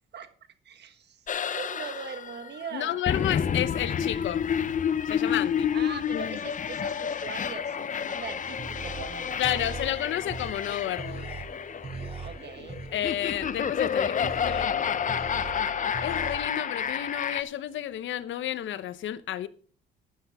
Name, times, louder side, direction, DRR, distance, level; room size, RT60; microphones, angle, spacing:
voice 1, 0.6-3.0 5.7-9.6 12.2-12.8, right 7 dB, 60° right, 1.4 m, -41 dB
sound 1, 1.3-17.4, left 8 dB, 40° left, 0.7 m, -30 dB
voice 2, 2.7-4.4 5.0-5.7 6.1-6.4 9.4-11.3 12.9-15.2 16.0-19.5, left 12 dB, 75° left, 0.9 m, -31 dB
sound 2, 8.2-16.4, right 3 dB, 30° right, 2.3 m, -41 dB
12.0 x 10.5 x 3.5 m
cardioid pair, 90°, 20 cm